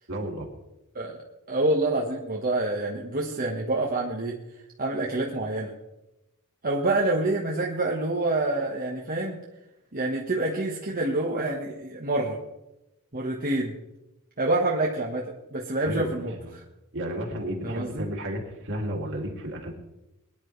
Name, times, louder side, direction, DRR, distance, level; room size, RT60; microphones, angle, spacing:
voice 1, 0.1-0.5 15.8-16.5 16.9-19.7, equal, 60° right, 1 dB, 2.8 m, -32 dB
voice 2, 1.5-4.4 4.8-5.7 6.6-9.4 9.9-12.4 13.1-13.7 14.4-16.6 17.6-18.1, right 2 dB, 40° right, -3 dB, 1.6 m, -27 dB
22.5 x 10.5 x 3.4 m, 0.94 s
head